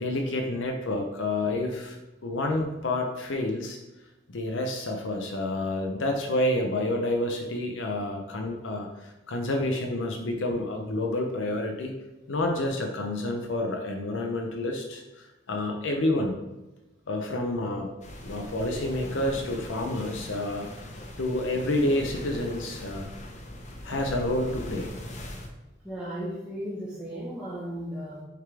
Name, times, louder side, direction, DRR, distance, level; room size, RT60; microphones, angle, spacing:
voice 1, 0.0-3.8 4.3-11.9 12.3-16.3 17.1-17.9 18.2-20.7 21.2-23.1 23.8-24.9, left 1 dB, 75° left, 2 dB, 0.7 m, -29 dB
sound 1, 18.0-25.5, left 1 dB, 35° left, 0.8 m, -40 dB
voice 2, 25.8-28.2, equal, 5° right, -9 dB, 1.2 m, -35 dB
6.6 x 3.6 x 4.7 m, 1.0 s
head